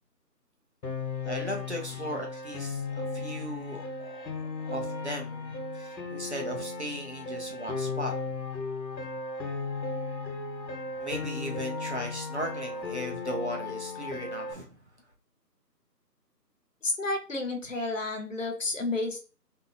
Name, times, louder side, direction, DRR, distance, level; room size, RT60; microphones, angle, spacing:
Piano, 0.8-14.5, left 3 dB, 85° left, 1.0 m, -35 dB
voice 1, 1.2-8.3 11.0-14.9, equal, 45° right, 0 dB, 0.6 m, -37 dB
voice 2, 16.8-19.2, left 2 dB, 50° left, 3 dB, 0.6 m, -31 dB
2.6 x 2.5 x 2.6 m, 0.35 s
figure-of-eight pair, 165°, 50 cm